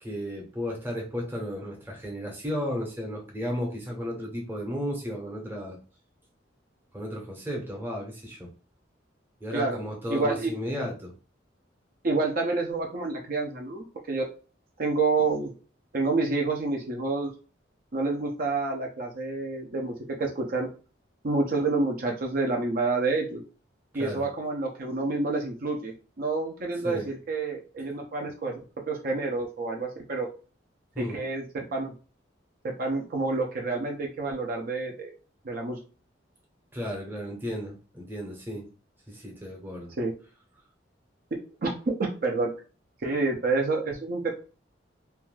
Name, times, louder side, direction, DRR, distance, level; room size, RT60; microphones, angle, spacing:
voice 1, 0.0-5.8 6.9-8.5 9.4-11.1 24.0-24.3 26.8-27.1 30.9-31.2 36.7-38.6 39.1-39.9, equal, 10° right, 0 dB, 0.8 m, -34 dB
voice 2, 10.1-10.5 12.0-14.2 14.8-15.5 15.9-17.3 17.9-20.7 21.2-23.4 23.9-28.6 28.9-30.3 31.0-31.4 31.7-31.9 32.6-35.1 35.4-35.8 40.0-40.1 41.6-42.5 43.0-44.3, right 3 dB, 50° right, 1 dB, 0.5 m, -28 dB
2.6 x 2.2 x 3.1 m, 0.35 s
head